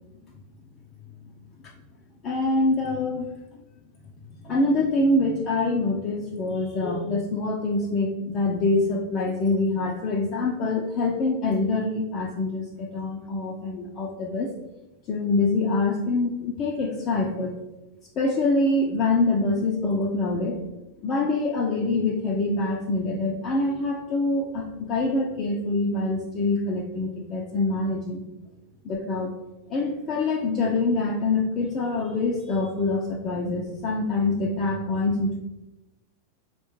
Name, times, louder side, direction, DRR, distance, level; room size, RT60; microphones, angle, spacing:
voice 1, 2.2-3.3 4.4-14.5 15.1-17.6 18.2-20.6 21.0-28.2 28.8-29.4 29.7-35.4, left 2 dB, 30° left, -2 dB, 0.4 m, -25 dB
4.1 x 2.2 x 3.0 m, 1.0 s
figure-of-eight pair, 90°, 0 cm